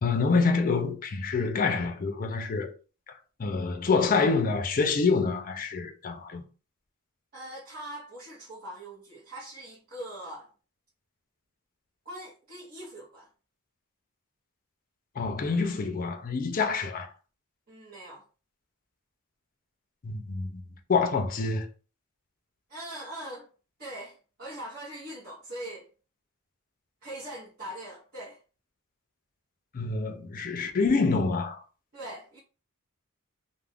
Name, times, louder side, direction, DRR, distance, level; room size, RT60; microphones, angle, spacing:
voice 1, 0.0-2.7 3.4-6.4 15.2-17.1 20.0-20.6 20.9-21.7 29.7-31.6, left 4 dB, 40° left, 0.4 m, -26 dB
voice 2, 7.3-10.5 12.0-13.3 17.7-18.2 22.7-23.5 23.8-25.9 27.0-28.4 30.6-30.7 31.9-32.4, right 1 dB, 45° right, 0.8 m, -41 dB
2.4 x 2.1 x 3.3 m
head